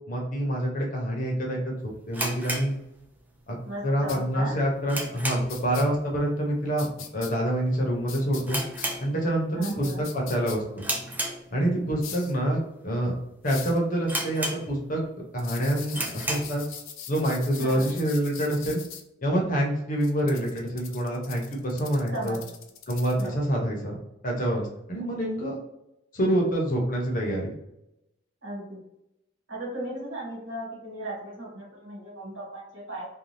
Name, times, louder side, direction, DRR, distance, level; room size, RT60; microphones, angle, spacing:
voice 1, 0.0-2.7 3.5-3.6 3.8-8.6 9.0-10.9 11.5-13.1 13.4-15.0 15.3-16.6 17.1-18.8 19.2-22.4 22.9-23.9 24.2-25.6 26.1-27.5, right 1 dB, 45° left, -1 dB, 0.7 m, -27 dB
sound 1, 2.1-3.5 3.7-3.8 4.4-5.7 6.0-6.3 6.6-6.7 7.4-7.6 7.9-8.0 8.4-9.6 9.9-10.2 10.8-11.9 12.5-12.6 13.2-13.3 13.5-13.6 14.1-15.0 15.4-15.5 15.9-16.6, right 1 dB, 10° right, 0.3 m, -32 dB
voice 2, 3.6-4.5 9.5-10.0 17.6-17.9 22.1-22.4 23.2-23.4 28.4-28.8 29.5-33.0, right 1 dB, 75° right, -4 dB, 1.5 m, -36 dB
sound 2, 4.1-4.2 5.5-5.8 6.8-7.3 8.1-8.9 9.6-10.6 12.0-12.3 13.5-13.8 15.4-19.0 20.0-23.3, left 8 dB, 90° left, 0.4 m, -41 dB
2.6 x 2.2 x 3.2 m, 0.86 s
head